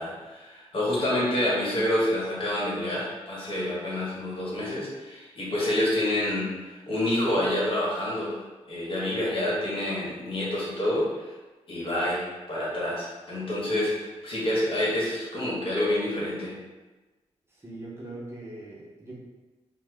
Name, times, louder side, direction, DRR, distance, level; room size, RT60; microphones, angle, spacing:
voice 1, 0.0-8.4 8.7-11.1 11.7-16.5, left 1 dB, 50° left, -6 dB, 1.1 m, -28 dB
voice 2, 17.5-19.1, right 2 dB, 20° right, -6 dB, 0.7 m, -41 dB
3.1 x 2.1 x 3.3 m, 1.2 s
cardioid pair, 105°, 12 cm